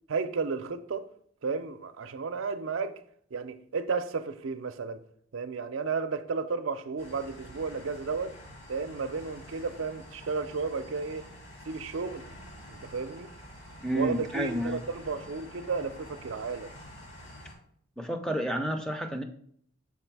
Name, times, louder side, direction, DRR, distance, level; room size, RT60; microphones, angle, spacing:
voice 1, 0.1-1.1 1.4-3.0 3.3-5.0 5.3-8.3 8.7-11.3 11.7-12.2 12.7-13.3 13.9-16.7, right 4 dB, 75° right, 0.5 m, -33 dB
sound 1, 7.0-17.5, equal, 75° left, 2.4 m, -48 dB
voice 2, 13.8-14.8 18.0-19.2, right 1 dB, 5° left, 0.5 m, -30 dB
5.9 x 4.2 x 4.6 m
head